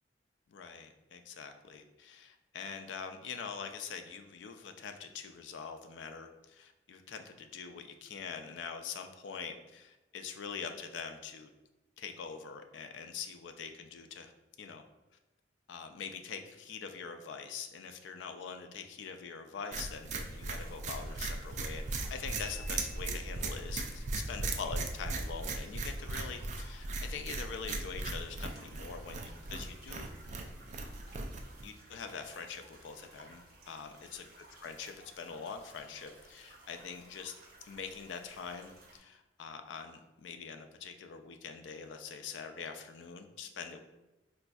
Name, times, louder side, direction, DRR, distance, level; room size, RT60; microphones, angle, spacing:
voice 1, 0.5-11.5 12.0-14.3 14.6-14.8 15.7-30.1 30.4-30.5 31.6-34.2 34.6-37.3 37.6-43.8, left 6 dB, 90° left, 7 dB, 0.3 m, -44 dB
sound 1, 19.7-31.7, right 3 dB, 40° right, 0.3 m, -38 dB
sound 2, 20.2-39.0, right 2 dB, 55° right, 0.9 m, -57 dB
Marimba xylophone, 22.4-23.8, left 1 dB, 75° right, 1.3 m, -51 dB
4.0 x 2.5 x 2.3 m, 1.0 s
head